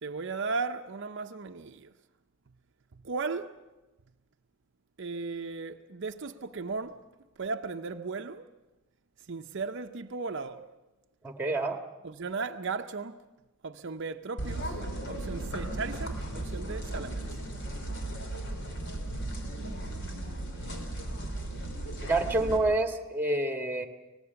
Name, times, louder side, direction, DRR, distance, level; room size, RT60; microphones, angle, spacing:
voice 1, 0.0-1.9 2.9-3.6 5.0-7.0 7.4-8.5 9.3-10.7 12.0-13.2 13.6-14.8 15.1-17.3, right 4 dB, 60° right, 0.7 m, -36 dB
voice 2, 11.2-11.8 22.0-23.9, right 2 dB, 10° right, 1.6 m, -28 dB
sound 1, 14.4-22.6, right 1 dB, 55° left, 3.5 m, -36 dB
25.0 x 19.0 x 7.0 m
head